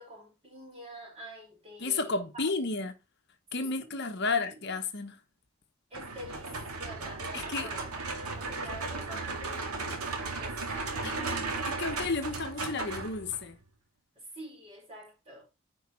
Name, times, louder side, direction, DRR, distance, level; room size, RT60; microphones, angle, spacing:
voice 1, 0.0-2.4 3.6-3.9 4.2-4.6 5.9-11.4 14.1-15.4, right 1 dB, 25° right, 4.5 m, -47 dB
voice 2, 1.8-2.9 3.5-5.2 7.3-7.7 11.0-13.6, left 4 dB, 50° left, 1.0 m, -32 dB
sound 1, 5.9-13.5, right 3 dB, 90° right, 2.2 m, -36 dB
10.0 x 4.7 x 4.3 m
head